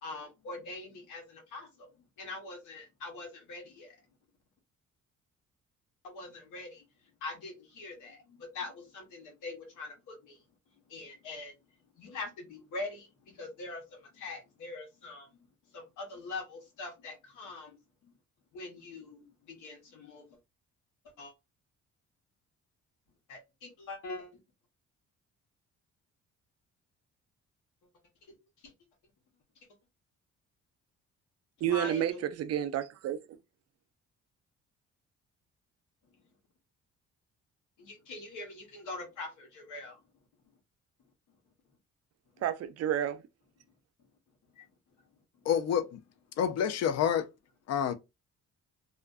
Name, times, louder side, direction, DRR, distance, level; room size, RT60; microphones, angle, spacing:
voice 1, 0.0-1.9 2.2-4.0 6.0-6.8 7.2-10.4 10.9-11.5 12.0-15.5 15.7-17.8 18.0-18.1 18.5-20.4 21.2-21.3 23.3-24.4 31.7-32.2 37.8-40.0 44.5-44.7, left 2 dB, 90° left, 1.0 m, -43 dB
voice 2, 31.6-33.2 42.4-43.2, right 10 dB, 55° right, 0.4 m, -30 dB
voice 3, 45.5-46.0 46.4-47.2 47.7-47.9, left 8 dB, 60° left, 0.5 m, -28 dB
2.4 x 2.2 x 2.4 m
cardioid pair, 90°, 30 cm